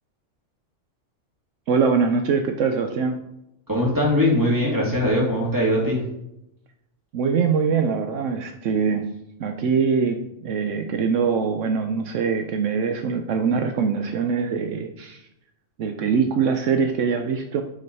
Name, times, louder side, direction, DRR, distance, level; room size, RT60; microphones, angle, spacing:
voice 1, 1.7-3.2 7.1-9.0 9.4-15.2 15.8-17.6, right 5 dB, 75° right, 6 dB, 1.0 m, -23 dB
voice 2, 3.7-6.0, left 1 dB, 15° right, -4 dB, 2.6 m, -21 dB
6.4 x 5.3 x 5.4 m, 0.84 s
omnidirectional pair, 1.3 m